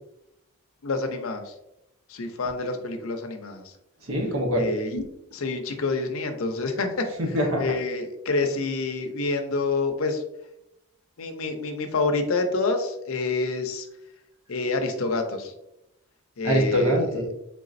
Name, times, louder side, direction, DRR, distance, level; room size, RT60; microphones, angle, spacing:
voice 1, 0.8-1.5 2.1-3.6 4.6-5.0 5.3-7.1 7.6-10.2 11.2-13.9 14.5-15.5 16.4-17.1, left 3 dB, 65° left, 5 dB, 0.6 m, -27 dB
voice 2, 4.1-4.6 7.2-7.7 16.4-17.3, equal, 65° right, 0 dB, 1.0 m, -24 dB
4.0 x 3.5 x 2.5 m, 0.85 s
head